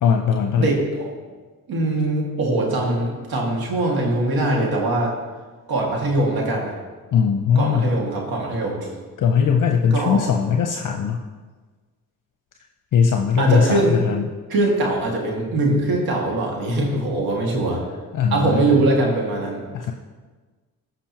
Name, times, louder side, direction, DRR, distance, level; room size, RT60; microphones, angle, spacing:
voice 1, 0.0-0.7 7.1-7.9 9.2-11.2 12.9-13.8 14.1-14.2 18.1-18.8 19.7-19.9, left 6 dB, 55° left, 3 dB, 0.7 m, -19 dB
voice 2, 0.6-1.1 1.7-5.1 5.7-6.7 7.6-8.9 9.9-10.2 13.4-14.0 14.5-17.8 18.3-19.6, right 2 dB, 75° right, -1 dB, 2.1 m, -22 dB
14.5 x 5.2 x 2.9 m, 1.4 s
cardioid pair, 65°, 36 cm